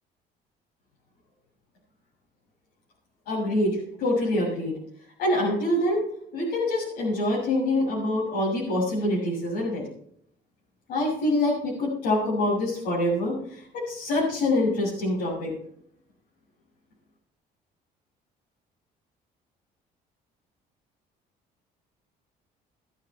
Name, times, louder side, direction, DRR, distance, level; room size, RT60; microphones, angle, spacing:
voice 1, 3.3-4.7 5.2-6.0 6.3-9.9 10.9-15.5, left 1 dB, 85° left, -6 dB, 7.0 m, -25 dB
22.0 x 9.8 x 3.3 m, 0.65 s
cardioid pair, 110°, 17 cm